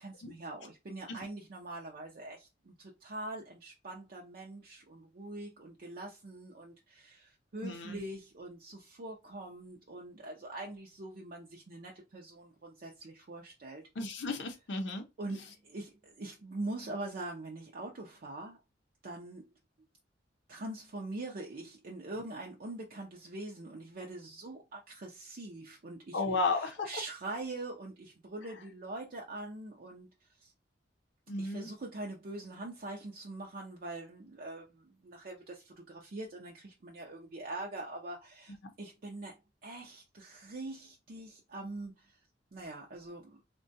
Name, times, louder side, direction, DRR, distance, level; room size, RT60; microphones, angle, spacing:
voice 1, 0.0-13.8 15.2-18.6 19.0-19.5 20.5-30.1 30.4-30.5 31.4-39.4 39.6-42.2 42.5-43.4, right 2 dB, 50° right, 0.5 m, -43 dB
voice 2, 7.6-8.0 14.0-15.0 26.1-26.9 31.3-31.7, left 3 dB, 70° left, 0.6 m, -33 dB
3.6 x 2.2 x 2.6 m
head